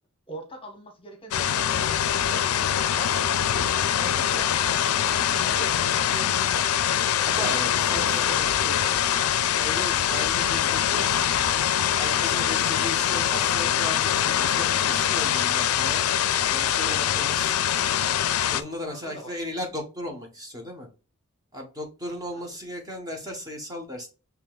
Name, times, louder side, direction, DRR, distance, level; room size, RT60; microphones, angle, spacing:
voice 1, 0.3-3.7 4.0-9.0 18.8-19.3 22.3-22.4, equal, 25° left, 1.1 m, -42 dB
sound 1, 1.3-18.6, left 10 dB, 80° left, 0.4 m, -23 dB
voice 2, 7.2-8.2 9.5-11.3 12.0-16.0 16.5-17.8 18.5-20.9 21.5-24.1, left 1 dB, 15° right, 1.0 m, -36 dB
6.8 x 3.4 x 2.3 m
head